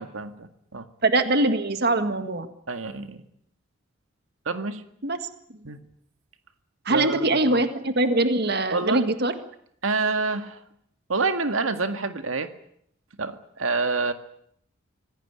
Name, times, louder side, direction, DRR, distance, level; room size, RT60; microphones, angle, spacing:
voice 1, 0.0-0.8 2.7-3.2 4.5-4.8 5.7-5.8 6.9-7.6 8.7-9.1 9.8-10.6 11.1-12.5 13.2-14.1, right 3 dB, 85° right, 8 dB, 1.9 m, -27 dB
voice 2, 1.0-2.5 5.0-5.3 6.9-9.3, right 2 dB, 55° right, 9 dB, 1.7 m, -23 dB
25.5 x 17.0 x 10.0 m, 0.71 s
head